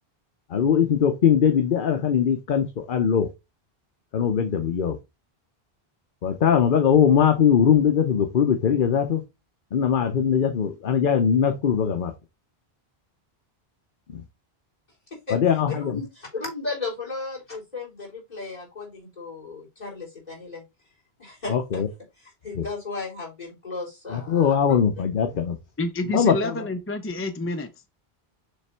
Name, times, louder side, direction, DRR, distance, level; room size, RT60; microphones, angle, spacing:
voice 1, 0.5-3.3 4.1-5.0 6.2-9.2 9.7-12.1 14.1-14.2 15.3-16.0 21.5-21.9 22.6-22.7 24.1-25.6 26.1-26.5, left 8 dB, 55° left, 0.9 m, -21 dB
voice 2, 15.7-20.6 21.2-21.8 22.2-24.8, left 3 dB, 40° left, 3.7 m, -35 dB
voice 3, 25.8-27.7, left 1 dB, 15° left, 0.5 m, -28 dB
6.7 x 3.4 x 4.3 m
omnidirectional pair, 1.1 m